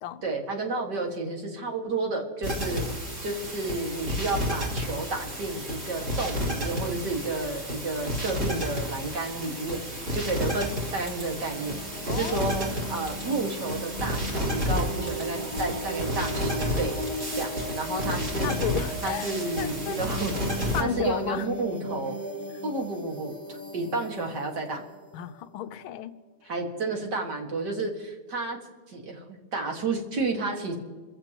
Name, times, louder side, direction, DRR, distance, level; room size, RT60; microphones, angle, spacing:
voice 1, 0.2-2.8 3.2-9.8 10.1-11.8 12.0-17.0 17.3-18.6 19.0-20.4 20.8-22.2 22.6-24.9 26.5-28.6 28.9-30.8, right 3 dB, 55° right, 1 dB, 2.5 m, -31 dB
sound 1, 2.4-20.8, equal, 35° right, 3.2 m, -32 dB
sound 2, 11.4-26.0, equal, 25° left, 1.9 m, -37 dB
voice 2, 12.0-12.7 18.4-19.3 19.6-20.0 20.7-21.5 22.5-22.6 25.1-26.1 26.4-26.5, left 10 dB, 80° left, 11 dB, 1.5 m, -33 dB
28.5 x 15.0 x 3.0 m, 1.4 s
omnidirectional pair, 2.3 m